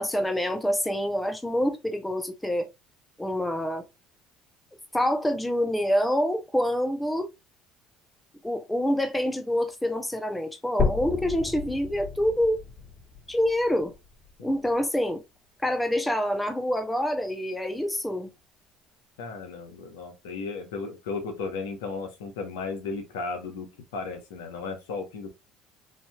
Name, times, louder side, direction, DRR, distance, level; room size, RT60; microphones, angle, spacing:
voice 1, 0.0-2.7 3.2-3.8 4.9-7.3 8.4-12.6 13.3-13.9 14.4-15.2 15.6-18.3, equal, 10° left, 0.7 m, -26 dB
sound 1, 10.8-14.8 15.4-15.5 16.0-16.1 16.5-16.6 17.4-17.5, left 4 dB, 35° left, 1.6 m, -32 dB
voice 2, 19.2-25.3, left 4 dB, 85° left, 0.9 m, -35 dB
3.3 x 2.7 x 2.3 m
hypercardioid pair, 75°, 0 cm